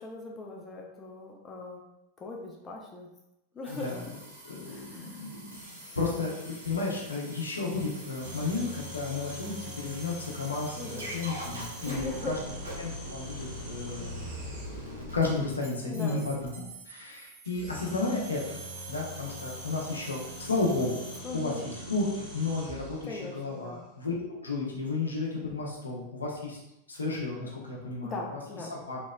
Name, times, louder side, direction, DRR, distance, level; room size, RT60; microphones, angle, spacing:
voice 1, 0.0-1.8 2.2-3.1 3.5-3.9 4.7-5.2 10.8-11.2 11.8-12.4 15.8-16.2 21.2-21.6 23.0-23.8 28.0-28.7, left 3 dB, 20° left, -1 dB, 0.5 m, -39 dB
voice 2, 3.7-4.0 4.4-12.3 12.8-14.2 14.5-21.0 21.3-26.6 26.9-28.2 28.7-29.0, left 3 dB, 75° left, -2 dB, 0.6 m, -33 dB
sound 1, 3.7-21.2, equal, 75° right, 0.9 m, -44 dB
sound 2, 8.2-15.1 17.4-23.2, right 1 dB, 45° right, 1.4 m, -43 dB
3.0 x 2.9 x 2.3 m, 0.87 s
figure-of-eight pair, 90°, 0 cm